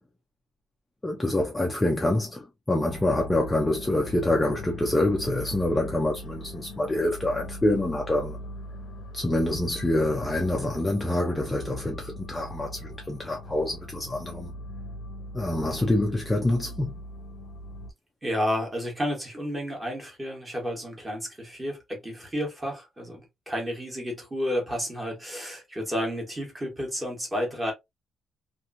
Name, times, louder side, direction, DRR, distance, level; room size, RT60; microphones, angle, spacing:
voice 1, 1.0-8.4 9.1-14.5 15.3-17.0, left 1 dB, 10° left, 0.4 m, -26 dB
sound 1, 2.9-17.9, left 1 dB, 85° left, 0.7 m, -40 dB
voice 2, 18.2-27.7, equal, 15° right, 1.1 m, -31 dB
2.8 x 2.5 x 2.5 m
cardioid pair, 175°, 0 cm